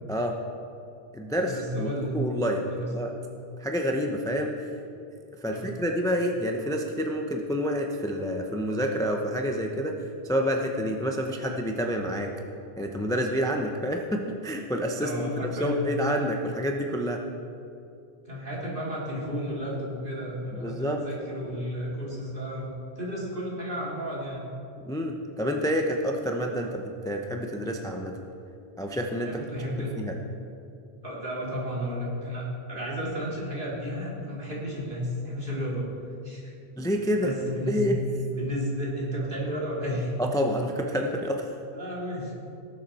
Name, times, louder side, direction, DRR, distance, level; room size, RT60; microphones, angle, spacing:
voice 1, 0.1-0.4 1.1-1.9 2.1-2.6 2.9-3.1 3.6-4.7 5.4-10.0 10.2-12.3 12.8-17.2 20.6-21.0 24.9-28.2 28.8-29.4 29.8-30.1 36.8-37.3 37.7-38.0 40.2-41.5, equal, 5° left, 3 dB, 0.6 m, -28 dB
voice 2, 1.4-2.2 2.7-2.9 5.5-5.7 15.0-15.9 18.2-24.5 29.2-29.9 31.0-32.4 32.7-35.9 36.2-36.5 36.8-37.8 38.3-40.1 41.7-42.3, equal, 50° right, -5 dB, 2.8 m, -32 dB
18.5 x 7.3 x 4.2 m, 2.7 s
omnidirectional pair, 1.1 m